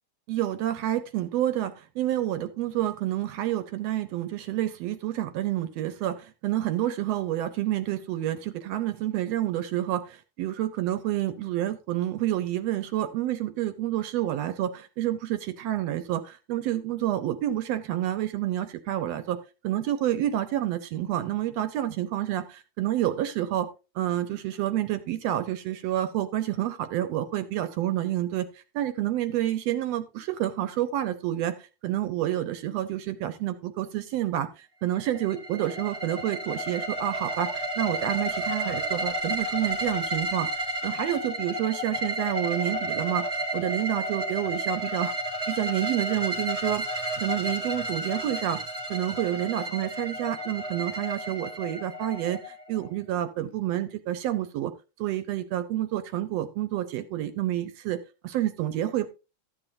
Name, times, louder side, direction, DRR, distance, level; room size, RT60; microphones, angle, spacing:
voice 1, 0.3-19.4 19.6-23.7 23.9-28.5 28.7-31.5 31.8-40.5 40.8-43.2 43.5-45.1 45.5-46.8 47.2-48.6 48.9-54.7 55.0-58.0 58.2-59.1, right 13 dB, 75° right, 11 dB, 1.7 m, -29 dB
sound 1, 35.0-52.9, right 1 dB, 25° right, 0.8 m, -32 dB
13.5 x 8.8 x 2.6 m, 0.30 s
omnidirectional pair, 3.4 m